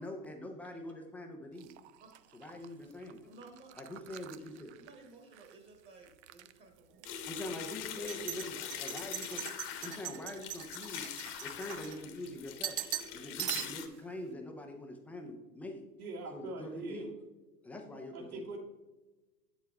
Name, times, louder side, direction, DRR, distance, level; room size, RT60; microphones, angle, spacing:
voice 1, 0.0-1.7 2.3-3.3 3.8-4.8 7.3-9.4 9.8-11.1 11.4-12.8 13.1-15.8 16.3-17.1 17.6-18.4, left 1 dB, 5° left, 3 dB, 0.4 m, -44 dB
sound 1, 1.6-5.5 5.8-6.5 7.0-7.1 7.9-12.3 12.6-13.1 13.4-14.0, right 13 dB, 50° right, 0.5 m, -42 dB
voice 2, 3.2-3.8 4.8-7.3 7.9-8.7 13.1-13.3, right 2 dB, 25° right, 4 dB, 1.3 m, -56 dB
sound 2, 7.0-13.9, left 9 dB, 35° left, 1.1 m, -43 dB
voice 3, 16.0-17.1 18.1-18.6, right 2 dB, 70° right, -2 dB, 2.6 m, -42 dB
8.2 x 7.0 x 3.4 m, 1.2 s
hypercardioid pair, 110°, 45 cm